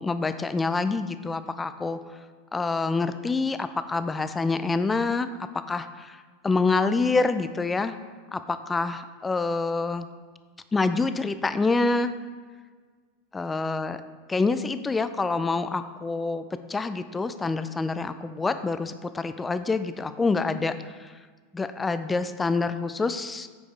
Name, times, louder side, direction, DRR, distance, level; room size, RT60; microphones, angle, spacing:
voice 1, 0.0-2.0 2.5-5.3 5.5-7.9 8.3-10.1 10.7-12.1 13.3-14.0 14.3-21.1 21.5-23.5, left 3 dB, 15° left, 11 dB, 0.4 m, -27 dB
8.5 x 5.2 x 3.3 m, 1.5 s
hypercardioid pair, 95°, 0 cm